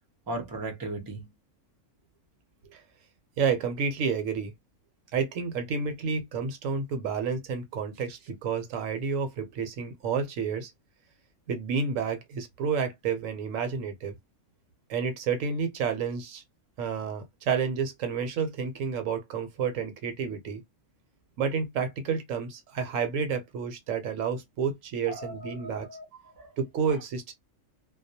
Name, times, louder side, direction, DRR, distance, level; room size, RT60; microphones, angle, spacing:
voice 1, 0.3-1.3 25.1-26.0 26.4-26.5, right 2 dB, 30° right, 0.4 m, -37 dB
voice 2, 3.4-4.5 5.1-10.7 11.5-14.1 14.9-16.4 16.8-20.6 21.4-25.9 26.6-27.3, right 6 dB, 75° right, 0.9 m, -30 dB
2.3 x 2.0 x 2.6 m
omnidirectional pair, 1.4 m